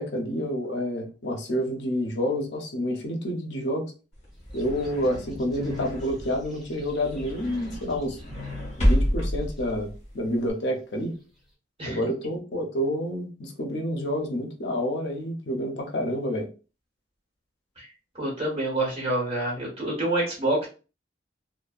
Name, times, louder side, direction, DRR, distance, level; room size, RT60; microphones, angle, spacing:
voice 1, 0.0-3.9 4.5-8.2 8.8-9.9 10.1-11.1 11.8-16.5, equal, 65° left, 3 dB, 0.6 m, -28 dB
sound 1, 4.1-10.5, equal, 35° left, 1.2 m, -30 dB
sound 2, 4.6-8.9, left 4 dB, ahead, 0.5 m, -43 dB
voice 2, 18.1-20.7, right 1 dB, 30° right, -4 dB, 1.1 m, -27 dB
2.7 x 2.1 x 2.3 m, 0.34 s
head